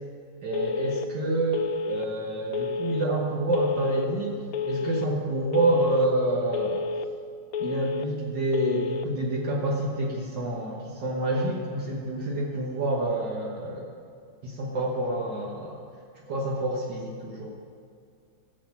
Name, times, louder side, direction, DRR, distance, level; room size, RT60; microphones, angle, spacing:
voice 1, 0.4-4.4 4.7-6.9 7.6-13.9 14.4-15.8 16.3-17.6, right 1 dB, 70° right, -3 dB, 2.0 m, -28 dB
Telephone, 0.5-1.1 1.5-2.1 2.5-3.1 3.5-4.1 4.5-5.1 5.5-6.1 6.5-7.1 7.5-8.1 8.5-9.1, left 4 dB, 70° left, 0.9 m, -30 dB
16.0 x 7.7 x 5.8 m, 2.3 s
omnidirectional pair, 2.0 m